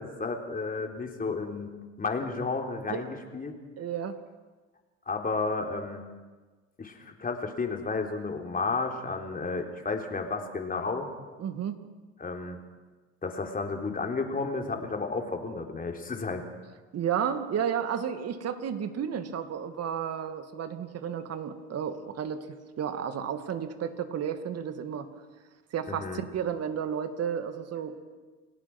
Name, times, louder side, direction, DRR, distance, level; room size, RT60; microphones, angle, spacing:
voice 1, 0.0-1.7 2.0-3.5 5.1-6.0 6.8-11.1 12.2-12.6 13.2-16.4 25.9-26.2, left 4 dB, 25° left, 3 dB, 3.8 m, -32 dB
voice 2, 3.8-4.2 11.4-11.8 16.9-22.5 22.8-25.1 25.7-28.0, right 8 dB, 50° right, 9 dB, 2.4 m, -32 dB
28.5 x 17.5 x 6.2 m, 1.3 s
supercardioid pair, 90°, 32 cm